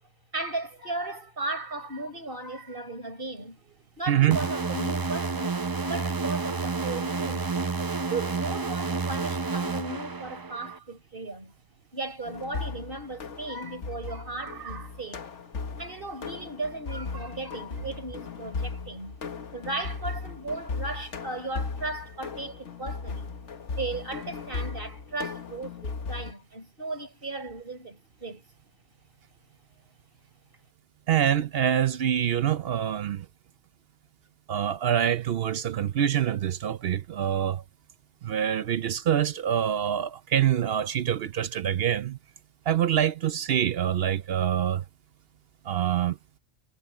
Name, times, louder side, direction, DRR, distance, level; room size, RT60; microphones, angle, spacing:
voice 1, 0.3-7.5 8.1-11.5 11.9-15.3 15.8-19.2 19.5-23.4 23.7-28.4, right 2 dB, 45° right, 4.4 m, -36 dB
voice 2, 4.1-4.4 31.1-33.3 34.5-37.6 38.2-42.2 42.7-44.8 45.6-46.2, right 10 dB, 60° right, 0.7 m, -25 dB
sound 1, 4.3-10.8, right 4 dB, 25° right, 0.5 m, -30 dB
sound 2, 12.3-26.3, left 4 dB, 70° left, 1.6 m, -37 dB
omnidirectional pair, 1.3 m